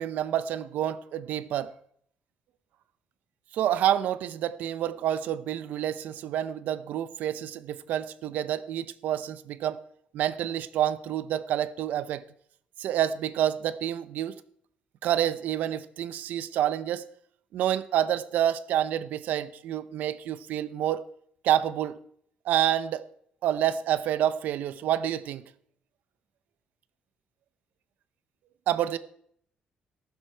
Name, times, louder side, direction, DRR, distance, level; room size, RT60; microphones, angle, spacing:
voice 1, 0.0-1.7 3.5-9.8 10.1-12.2 12.8-14.4 15.0-17.1 17.5-21.0 21.4-22.0 22.4-23.0 23.4-25.4 28.7-29.0, right 11 dB, 80° right, 0.7 m, -28 dB
14.5 x 12.0 x 4.5 m
cardioid pair, 150°, 3 cm